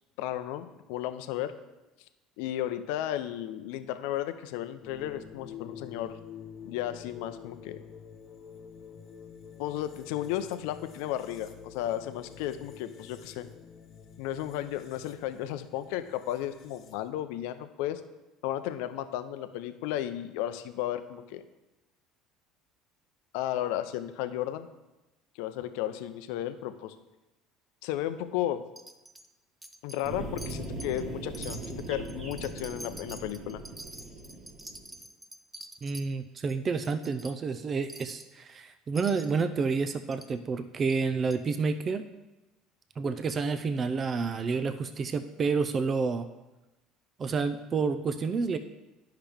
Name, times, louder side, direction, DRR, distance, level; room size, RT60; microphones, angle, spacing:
voice 1, 0.2-1.5 2.4-6.2 6.6-7.8 9.6-13.5 14.2-18.0 18.4-21.4 23.3-24.7 25.4-27.0 27.8-28.6 29.8-33.6, left 12 dB, 75° left, 10 dB, 0.5 m, -34 dB
sound 1, 4.8-17.1, left 7 dB, 55° left, 1.0 m, -48 dB
Wind chime, 28.8-29.3 29.6-30.1 30.4-31.0 31.3-36.1 36.5-36.6 36.8-37.3 37.9-38.3 39.0-39.4 40.1-40.3 40.9-41.0 41.3-41.4, right 1 dB, 10° right, 0.8 m, -46 dB
sound 2, 30.0-35.0, right 2 dB, 55° right, 1.6 m, -40 dB
voice 2, 35.8-42.0 43.0-46.3 47.2-48.6, right 4 dB, 40° right, 10 dB, 0.5 m, -29 dB
10.0 x 5.7 x 3.5 m, 1.0 s
hypercardioid pair, 75°, 0 cm